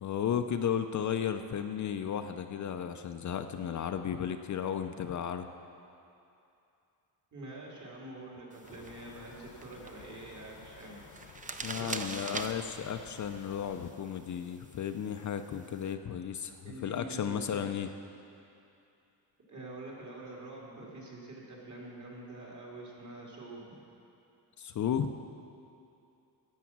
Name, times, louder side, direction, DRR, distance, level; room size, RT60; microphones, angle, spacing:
voice 1, 0.0-5.5 11.6-17.9 24.6-25.1, left 8 dB, 45° left, 8 dB, 0.5 m, -34 dB
voice 2, 7.3-11.0 11.7-12.2 16.6-17.9 19.5-23.8, right 2 dB, 45° right, -3 dB, 2.9 m, -46 dB
sound 1, 8.5-15.9, right 3 dB, 20° right, 0.6 m, -45 dB
sound 2, 8.6-13.9, left 6 dB, 65° left, 1.0 m, -54 dB
10.5 x 8.3 x 7.2 m, 2.7 s
cardioid pair, 110°, 42 cm